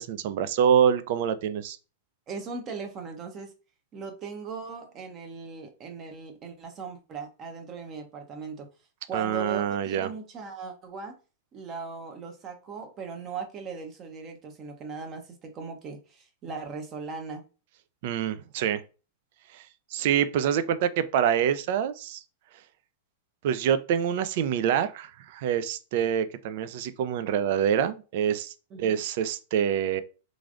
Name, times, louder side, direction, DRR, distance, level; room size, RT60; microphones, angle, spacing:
voice 1, 0.0-1.8 9.1-10.1 18.0-18.8 19.5-19.6 19.9-22.2 23.4-30.0, right 9 dB, 60° right, 0.3 m, -26 dB
voice 2, 2.3-3.5 3.9-8.7 9.1-11.1 11.5-17.4 28.7-29.0, right 5 dB, 35° right, 0.8 m, -38 dB
3.1 x 2.5 x 2.4 m
hypercardioid pair, 120°, 0 cm